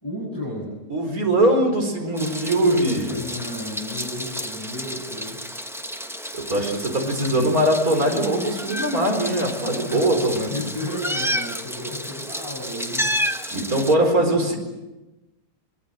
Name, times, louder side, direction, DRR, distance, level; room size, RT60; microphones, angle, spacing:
voice 1, 0.0-0.8 1.6-5.7 7.0-7.5 9.9-13.2 14.2-14.6, left 1 dB, 15° left, -3 dB, 5.7 m, -34 dB
voice 2, 0.9-3.2 6.3-10.5 13.5-14.6, right 1 dB, 60° right, 3 dB, 4.9 m, -21 dB
Meow, 2.2-13.9, equal, ahead, 0.8 m, -31 dB
23.0 x 22.5 x 9.1 m, 1.1 s
omnidirectional pair, 1.7 m